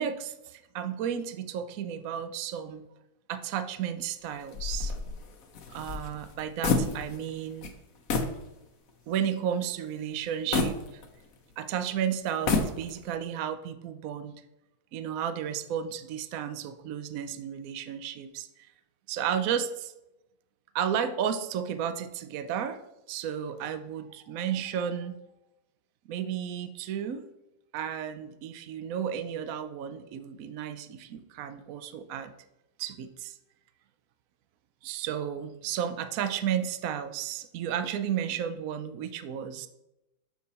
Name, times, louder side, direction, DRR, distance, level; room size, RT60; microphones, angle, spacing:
voice 1, 0.0-2.9 3.3-4.9 5.7-7.7 9.1-11.0 11.6-14.4 14.9-18.7 19.1-19.9 20.7-22.8 23.1-25.2 26.1-27.3 27.7-32.3 32.8-33.3 34.8-39.7, right 9 dB, 75° right, 10 dB, 0.7 m, -33 dB
sound 1, 4.5-7.3 7.6-7.8 8.1-8.4 8.9-9.0 10.5-11.5 12.3-13.1, left 4 dB, 55° left, 1.1 m, -29 dB
7.5 x 5.9 x 4.2 m, 0.93 s
omnidirectional pair, 2.2 m